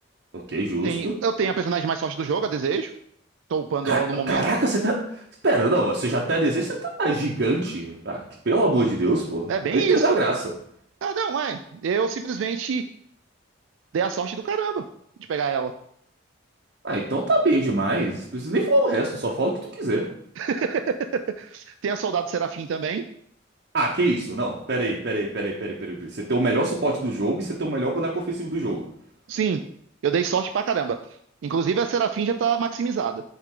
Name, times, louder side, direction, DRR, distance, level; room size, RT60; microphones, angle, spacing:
voice 1, 0.3-1.2 3.8-10.5 16.8-20.1 23.7-28.9, right 2 dB, 55° right, -2 dB, 0.9 m, -24 dB
voice 2, 0.8-2.9 3.5-4.4 9.5-10.2 11.0-12.8 13.9-14.8 15.3-15.7 20.4-20.9 21.4-23.0 29.3-29.6 30.0-31.0 31.4-33.2, right 6 dB, 75° right, 8 dB, 0.3 m, -25 dB
7.3 x 3.7 x 3.8 m, 0.68 s
head